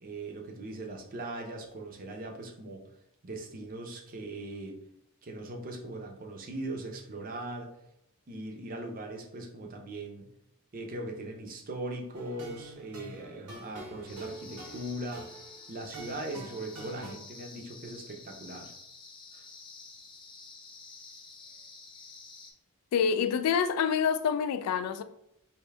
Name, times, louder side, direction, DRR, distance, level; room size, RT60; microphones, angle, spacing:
voice 1, 0.0-2.8 3.2-4.8 5.2-7.7 8.3-10.3 10.7-15.4 15.7-18.7 19.3-19.5, right 1 dB, 40° right, 0.6 m, -40 dB
sound 1, 12.1-17.1, right 2 dB, 85° right, 1.0 m, -46 dB
sound 2, 14.1-22.5, left 4 dB, 20° left, 0.4 m, -50 dB
voice 2, 22.9-25.0, left 7 dB, 85° left, 0.3 m, -27 dB
3.4 x 2.6 x 3.3 m
head